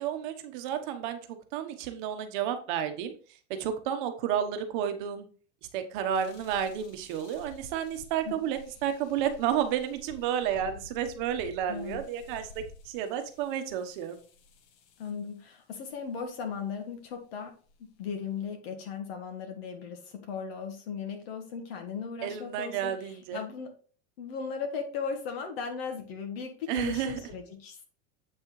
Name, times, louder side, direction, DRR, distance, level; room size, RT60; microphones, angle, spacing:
voice 1, 0.0-3.1 3.6-5.3 5.7-14.2 22.2-23.4 26.7-27.2, right 9 dB, 40° right, 7 dB, 1.1 m, -31 dB
sound 1, 6.1-15.3 16.1-16.5 17.1-17.2 17.7-18.4, left 3 dB, 35° left, 0.9 m, -52 dB
voice 2, 11.7-12.0 15.0-17.5 18.0-23.7 24.2-27.8, left 6 dB, 50° left, 4 dB, 1.4 m, -37 dB
8.2 x 6.2 x 3.2 m, 0.41 s
supercardioid pair, 175°, 38 cm